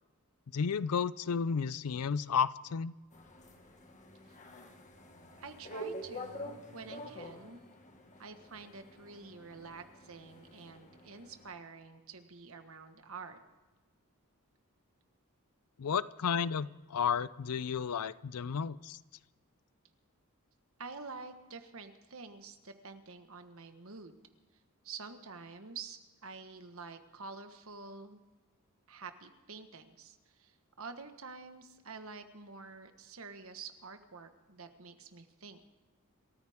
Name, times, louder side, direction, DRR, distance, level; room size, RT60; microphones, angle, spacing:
voice 1, 0.5-2.9 15.8-19.0, left 6 dB, 80° left, 18 dB, 0.5 m, -32 dB
sound 1, 3.1-11.5, equal, 35° left, 1.7 m, -48 dB
voice 2, 5.4-7.6 8.2-13.4 20.8-24.2 24.8-28.2 28.9-35.6, right 4 dB, 65° right, 8 dB, 1.4 m, -48 dB
27.0 x 14.0 x 3.6 m, 1.2 s
head